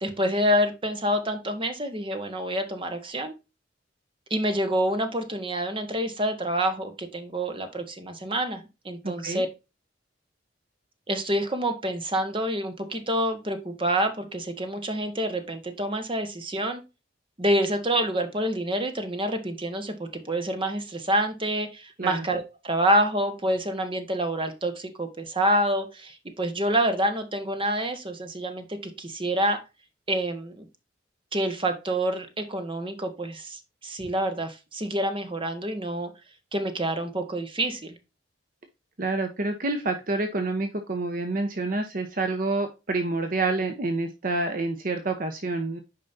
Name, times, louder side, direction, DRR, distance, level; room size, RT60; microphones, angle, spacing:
voice 1, 0.0-3.3 4.3-9.5 11.1-16.8 17.4-29.6 30.1-30.7 31.3-36.1 36.5-37.9, right 1 dB, 25° right, 7 dB, 1.3 m, -27 dB
voice 2, 9.0-9.4 22.0-22.2 39.0-45.8, right 2 dB, 45° right, 6 dB, 0.9 m, -28 dB
8.7 x 5.3 x 2.7 m, 0.27 s
head